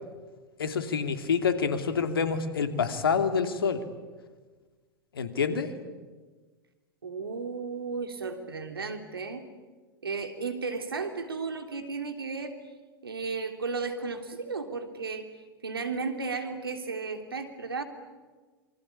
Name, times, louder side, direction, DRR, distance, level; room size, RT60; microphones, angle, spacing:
voice 1, 0.6-3.8 5.1-5.7, left 6 dB, 80° left, 8 dB, 2.8 m, -27 dB
voice 2, 7.0-9.4 10.0-12.6 13.0-15.3 15.6-17.8, right 4 dB, 90° right, 6 dB, 3.4 m, -34 dB
27.0 x 25.5 x 8.6 m, 1.3 s
hypercardioid pair, 95°, 12 cm